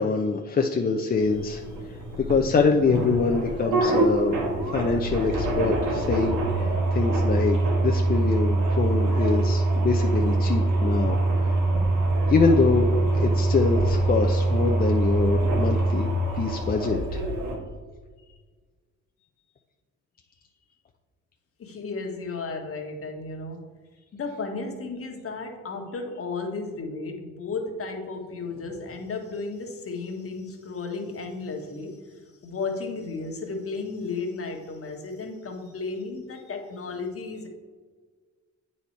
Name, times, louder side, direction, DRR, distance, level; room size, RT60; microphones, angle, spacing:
voice 1, 0.0-4.4 4.7-11.7 12.3-12.9 13.1-17.2, left 4 dB, 30° left, 2 dB, 0.6 m, -25 dB
sound 1, 1.1-17.6, right 2 dB, 80° right, 1.7 m, -24 dB
voice 2, 21.6-23.7 24.1-37.5, left 4 dB, 50° left, 3 dB, 1.3 m, -34 dB
8.3 x 4.2 x 4.5 m, 1.4 s
cardioid pair, 90°, 30 cm